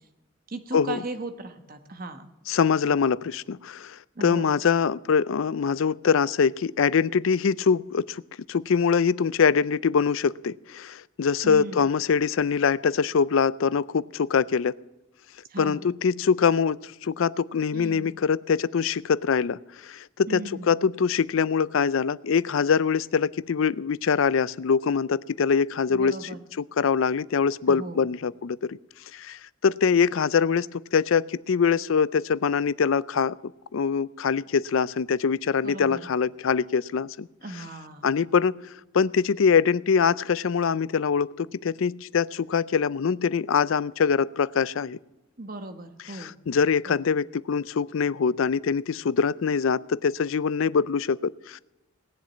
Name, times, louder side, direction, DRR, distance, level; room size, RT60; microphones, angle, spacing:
voice 1, 0.5-2.3 4.1-4.6 11.4-11.8 15.5-15.9 17.7-18.1 20.3-20.8 25.9-26.4 27.7-28.1 35.6-36.0 37.4-38.1 45.4-46.3 46.9-47.1, right 2 dB, 45° right, 8 dB, 1.2 m, -37 dB
voice 2, 2.5-8.2 8.5-14.8 15.6-26.2 26.6-28.8 29.1-33.4 33.7-37.3 38.0-38.6 38.9-45.0 46.2-51.6, left 6 dB, 70° left, 20 dB, 0.4 m, -24 dB
19.0 x 7.4 x 8.4 m, 0.98 s
head